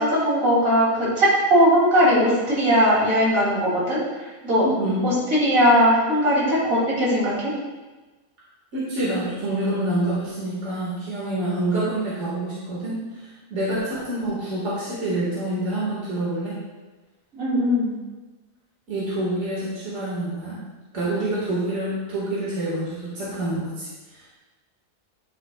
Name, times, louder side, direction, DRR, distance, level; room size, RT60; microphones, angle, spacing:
voice 1, 0.0-4.6 5.0-7.5 17.3-17.9, equal, 85° right, -6 dB, 3.2 m, -19 dB
voice 2, 4.6-5.0 8.7-16.6 18.9-20.6 20.9-24.4, right 1 dB, 60° right, -7 dB, 2.1 m, -27 dB
9.8 x 7.6 x 2.3 m, 1.2 s
omnidirectional pair, 1.4 m